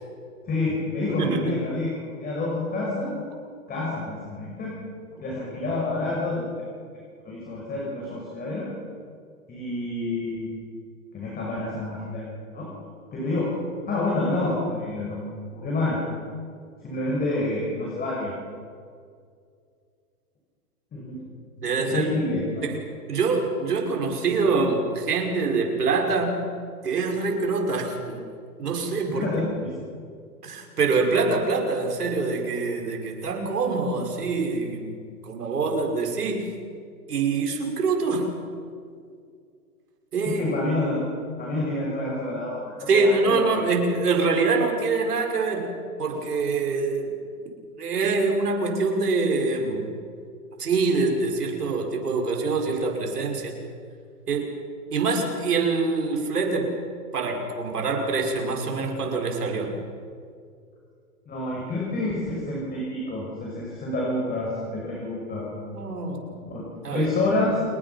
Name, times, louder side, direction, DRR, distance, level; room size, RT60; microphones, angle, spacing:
voice 1, 0.5-3.2 3.7-4.8 5.2-6.5 7.2-8.7 9.5-10.5 11.1-12.7 13.1-13.5 13.9-15.2 15.5-16.0 16.8-18.3 20.9-21.2 21.7-22.6 29.1-29.8 40.2-41.0 41.4-43.6 61.3-65.5 66.2-66.6 66.9-67.6, left 2 dB, 20° left, -3 dB, 6.4 m, -28 dB
voice 2, 1.2-1.6 21.6-22.1 22.6-22.8 23.1-26.4 26.8-28.2 28.6-29.3 30.4-36.5 37.1-38.3 40.1-40.5 42.9-45.7 46.0-47.1 47.8-49.8 50.6-53.6 54.3-54.5 54.9-56.7 57.1-59.7 65.7-66.2 66.8-67.1, right 4 dB, 90° right, 2 dB, 5.9 m, -25 dB
28.5 x 22.0 x 6.0 m, 2.2 s
hypercardioid pair, 130°, 45 cm